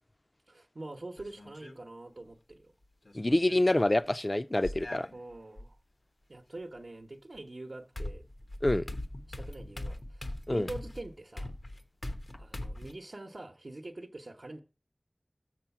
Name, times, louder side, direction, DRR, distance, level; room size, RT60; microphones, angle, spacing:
voice 1, 0.5-2.7 5.1-5.8 6.3-8.3 9.3-11.5 12.4-14.6, right 2 dB, 80° right, 0.8 m, -44 dB
sound 1, 1.2-1.8 3.1-3.7 4.6-5.7 7.4-7.5 8.0-12.9, left 1 dB, 85° left, 1.0 m, -40 dB
voice 2, 3.1-5.1 8.6-8.8 10.5-10.7, left 1 dB, 40° left, 0.4 m, -26 dB
7.1 x 6.1 x 5.8 m
wide cardioid pair, 45°, 0 cm